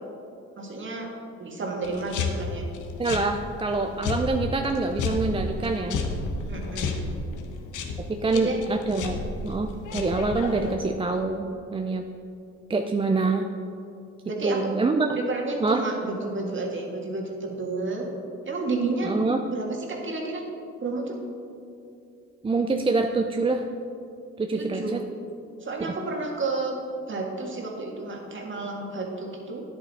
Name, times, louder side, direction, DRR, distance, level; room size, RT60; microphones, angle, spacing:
voice 1, 0.6-1.1 1.4-2.7 6.5-7.2 8.3-8.6 14.3-14.7 15.1-18.1 18.5-19.1 19.5-20.4 20.8-21.2 24.5-25.0 25.6-26.8 27.1-29.6, right 3 dB, 40° right, 0 dB, 1.9 m, -31 dB
sound 1, 1.8-10.7, left 3 dB, 80° left, 1.1 m, -32 dB
voice 2, 3.0-6.0 8.1-12.0 12.7-13.5 14.4-15.2 15.6-15.9 19.0-19.4 22.4-23.6 24.4-25.0 25.8-25.9, right 3 dB, 20° right, 4 dB, 0.5 m, -26 dB
10.0 x 8.3 x 4.2 m, 2.6 s
cardioid pair, 90°, 30 cm